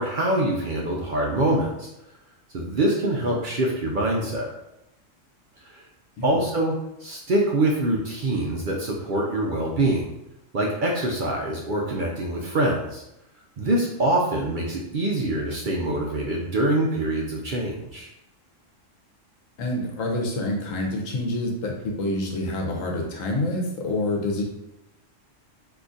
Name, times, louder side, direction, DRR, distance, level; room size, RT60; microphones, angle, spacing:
voice 1, 0.0-1.9 2.5-4.5 5.7-5.8 6.2-6.7 7.0-10.0 10.5-13.0 13.6-18.1, right 1 dB, 60° right, -1 dB, 0.5 m, -24 dB
voice 2, 19.6-24.4, left 1 dB, 85° left, 0 dB, 1.1 m, -27 dB
2.8 x 2.4 x 3.8 m, 0.88 s
omnidirectional pair, 1.3 m